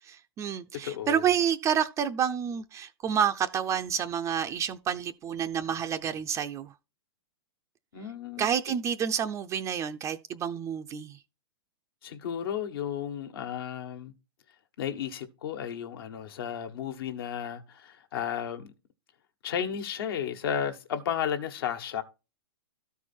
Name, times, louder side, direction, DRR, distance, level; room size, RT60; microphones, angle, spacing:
voice 1, 0.1-6.7 8.4-11.2, right 8 dB, 25° right, 0.5 m, -29 dB
voice 2, 0.7-1.3 7.9-8.5 12.0-14.1 14.8-18.7 19.4-22.0, left 8 dB, 65° left, 1.4 m, -33 dB
13.0 x 4.6 x 4.4 m
hypercardioid pair, 125°, 13 cm